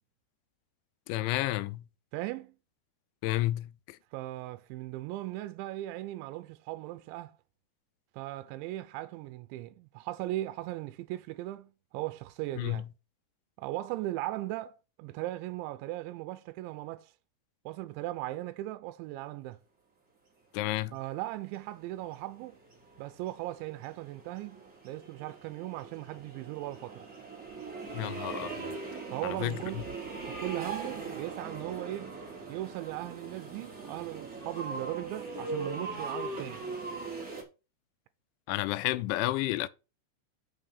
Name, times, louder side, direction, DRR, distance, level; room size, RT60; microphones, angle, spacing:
voice 1, 1.1-1.9 3.2-4.0 12.6-12.9 20.5-21.0 27.9-28.8 29.2-29.8 38.5-39.7, left 16 dB, 90° left, 2.9 m, -31 dB
voice 2, 2.1-2.6 4.1-7.4 8.1-12.8 13.6-17.1 17.7-19.6 20.9-22.6 23.0-27.1 29.1-29.9 30.2-32.2 32.5-36.6, right 16 dB, 90° right, 3.0 m, -38 dB
sound 1, 21.5-37.4, right 3 dB, 20° right, 3.5 m, -41 dB
6.6 x 6.2 x 6.9 m
omnidirectional pair, 5.2 m